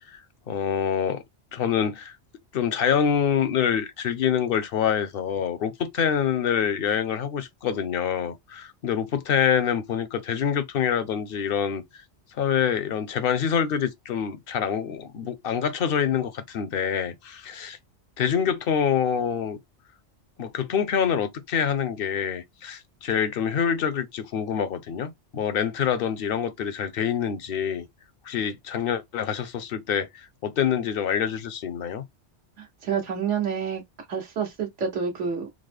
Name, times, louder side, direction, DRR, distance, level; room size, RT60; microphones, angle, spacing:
voice 1, 0.1-1.2 1.5-2.2 2.5-11.8 12.4-17.8 18.2-19.6 20.4-27.8 28.2-32.0, left 8 dB, 60° left, 0.7 m, -26 dB
voice 2, 32.6-33.8 34.1-35.5, right 6 dB, 80° right, 1.3 m, -28 dB
3.7 x 2.0 x 3.2 m
omnidirectional pair, 1.2 m